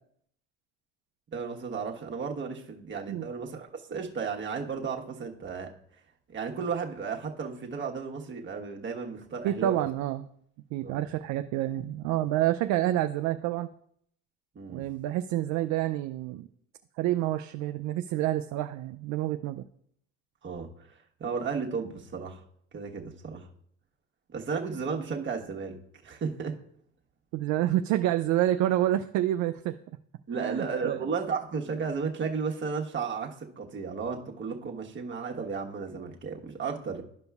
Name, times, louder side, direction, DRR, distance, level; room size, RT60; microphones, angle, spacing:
voice 1, 1.3-5.7 6.3-9.9 10.8-11.0 14.5-14.8 20.4-22.4 22.7-23.5 24.3-25.8 26.0-26.6 30.3-37.0, right 5 dB, 30° right, 1 dB, 1.3 m, -34 dB
voice 2, 9.4-10.3 10.7-13.7 14.7-16.5 17.0-19.6 27.3-29.7 30.4-31.0, right 13 dB, 50° right, 9 dB, 0.4 m, -28 dB
12.5 x 5.2 x 2.4 m, 0.67 s
hypercardioid pair, 80°, 37 cm